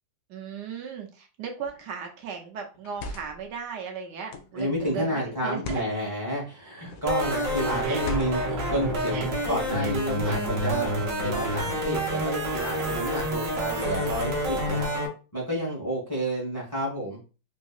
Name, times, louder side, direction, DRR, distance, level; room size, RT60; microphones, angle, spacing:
voice 1, 0.3-5.8 7.8-8.0 9.1-9.3 9.8-9.9 10.2-10.6 12.5-12.6 13.7-13.8, right 6 dB, 75° right, 2 dB, 1.3 m, -37 dB
sound 1, 1.6-1.9 2.7-3.5 4.3-4.6 5.5-5.9 6.8-7.2 8.0-8.6, equal, 70° left, 0.8 m, -37 dB
voice 2, 4.5-10.9 11.2-14.9 15.3-17.2, equal, 15° left, -4 dB, 1.0 m, -30 dB
sound 2, 7.1-15.1, equal, 55° right, 1.1 m, -28 dB
3.9 x 2.7 x 2.4 m, 0.33 s
omnidirectional pair, 1.9 m